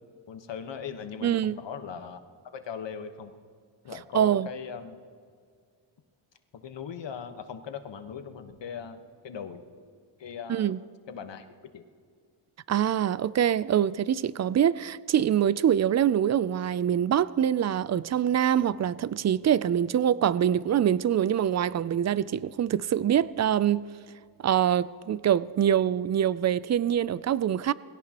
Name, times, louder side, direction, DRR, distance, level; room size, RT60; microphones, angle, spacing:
voice 1, 0.3-2.2 2.5-3.3 3.8-5.0 6.6-9.6 10.2-10.8 11.1-11.4 11.7-11.8, left 7 dB, 60° left, 1.3 m, -39 dB
voice 2, 1.2-1.6 3.9-4.5 10.5-10.8 12.7-23.8 24.4-27.7, right 10 dB, 35° right, 0.4 m, -24 dB
21.5 x 17.0 x 3.0 m
cardioid pair, 85°, 50 cm